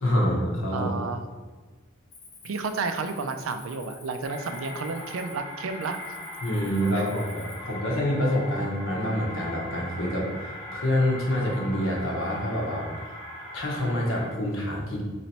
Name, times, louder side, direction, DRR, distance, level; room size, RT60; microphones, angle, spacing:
voice 1, 0.0-0.9 6.4-10.3 10.7-12.9 13.5-15.0, equal, 70° left, -2 dB, 1.0 m, -26 dB
voice 2, 0.7-1.2 2.4-6.1 6.9-7.1, right 4 dB, 85° right, 8 dB, 0.4 m, -31 dB
Cricket, 2.1-7.7, left 4 dB, 45° left, 1.1 m, -49 dB
sound 1, 4.2-14.3, left 1 dB, 25° left, 1.0 m, -40 dB
3.2 x 2.9 x 4.1 m, 1.4 s
head